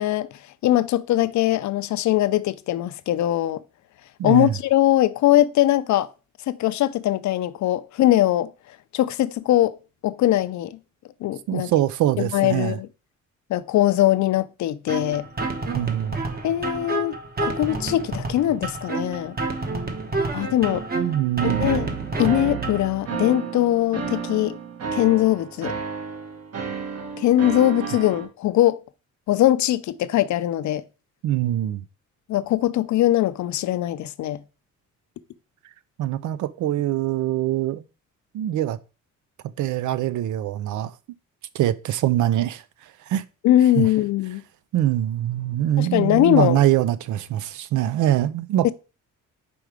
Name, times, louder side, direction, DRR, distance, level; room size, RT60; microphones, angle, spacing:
voice 1, 0.0-3.6 4.2-6.1 6.5-8.5 8.9-9.8 10.0-10.8 11.2-11.7 12.2-12.9 13.5-15.3 16.4-17.2 17.4-19.4 20.3-20.8 21.4-21.9 22.2-24.6 24.9-25.7 27.2-28.8 29.3-30.8 32.3-34.4 43.4-44.4 45.8-46.6 48.6-48.7, left 14 dB, 65° left, 0.6 m, -21 dB
voice 2, 4.2-4.5 11.5-12.8 15.7-16.2 20.9-21.8 31.2-31.8 36.0-37.8 38.3-38.8 39.6-40.9 41.5-42.6 43.1-43.2 43.8-43.9 44.7-48.7, right 13 dB, 75° right, 0.6 m, -23 dB
sound 1, 14.9-22.9, right 3 dB, 30° right, 1.2 m, -29 dB
sound 2, 21.4-28.3, right 6 dB, 55° right, 1.6 m, -32 dB
5.2 x 4.7 x 4.9 m
cardioid pair, 110°, 31 cm